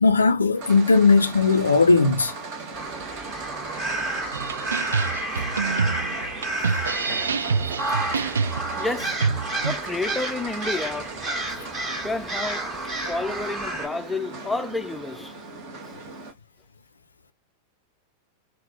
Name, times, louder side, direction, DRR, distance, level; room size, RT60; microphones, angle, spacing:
voice 1, 0.0-2.3, left 4 dB, 75° left, 0.5 m, -18 dB
sound 1, 0.5-16.3, right 3 dB, 45° right, 1.6 m, -38 dB
sound 2, 2.7-13.9, right 2 dB, 30° right, 1.8 m, -31 dB
sound 3, 4.3-9.7, right 5 dB, 70° right, 0.4 m, -26 dB
voice 2, 8.8-9.2 9.6-11.1 11.5-11.6 12.0-15.3 15.9-16.0, left 3 dB, 5° left, 0.5 m, -30 dB
3.9 x 2.0 x 3.9 m
figure-of-eight pair, 90°, 0 cm